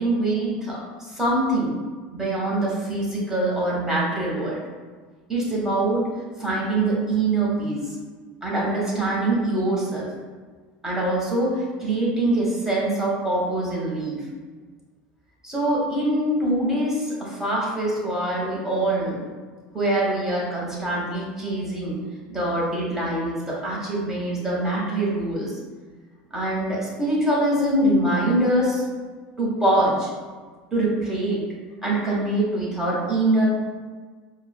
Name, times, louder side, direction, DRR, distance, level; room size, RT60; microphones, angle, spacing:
voice 1, 0.0-1.7 2.1-4.6 5.3-6.0 6.4-7.8 8.4-10.1 10.8-14.2 15.4-19.2 19.7-22.0 22.3-25.5 26.3-28.8 29.4-30.1 30.7-31.4 31.8-33.5, right 1 dB, 10° right, -5 dB, 1.4 m, -24 dB
4.6 x 2.2 x 2.3 m, 1.4 s
hypercardioid pair, 85°, 5 cm